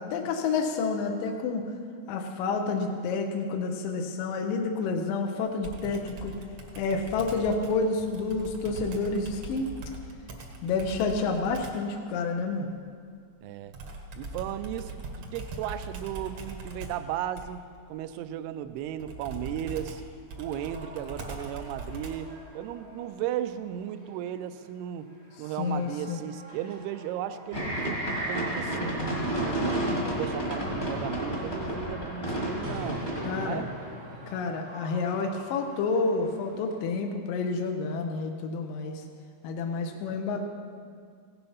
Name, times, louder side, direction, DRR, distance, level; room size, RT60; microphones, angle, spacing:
voice 1, 0.0-1.7 2.1-6.3 6.7-9.7 10.6-12.7 25.6-26.2 33.2-33.6 34.3-39.0 39.4-40.4, left 4 dB, 75° left, 3 dB, 2.1 m, -29 dB
Computer keyboard, 5.6-11.9 13.7-22.4, right 2 dB, 65° right, 1.7 m, -41 dB
voice 2, 13.4-13.8 14.1-20.0 20.4-22.3 22.5-25.1 25.4-29.0 29.5-33.1 33.4-33.7 40.1-40.2, right 11 dB, 85° right, 10 dB, 2.5 m, -35 dB
sound 1, 20.3-36.9, right 1 dB, 50° right, 0.7 m, -47 dB
sound 2, 27.5-33.5, right 1 dB, 20° left, 1.2 m, -31 dB
16.5 x 9.0 x 5.6 m, 2.1 s
omnidirectional pair, 4.9 m